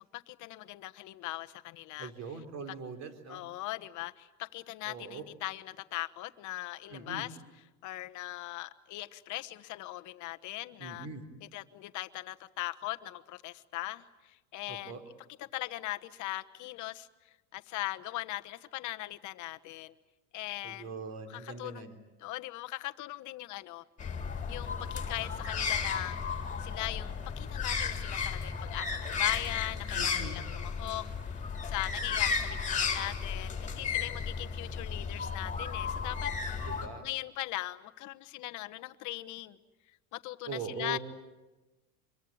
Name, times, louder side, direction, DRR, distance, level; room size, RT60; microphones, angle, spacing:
voice 1, 0.0-2.1 3.3-7.4 7.8-11.1 11.4-15.0 15.4-17.1 17.5-19.9 20.3-20.9 21.3-21.9 22.2-23.8 24.5-36.7 37.0-39.6 40.1-41.0, left 17 dB, 40° left, 9 dB, 1.2 m, -40 dB
voice 2, 2.0-3.4 4.8-5.2 6.9-7.3 10.8-11.2 14.7-15.0 20.6-22.0 29.9-30.4 36.7-37.1 40.5-41.0, right 4 dB, 35° right, 7 dB, 3.7 m, -41 dB
sound 1, 24.0-36.9, left 6 dB, 15° left, 3.3 m, -34 dB
26.0 x 23.0 x 8.7 m, 1.1 s
supercardioid pair, 145°, 44 cm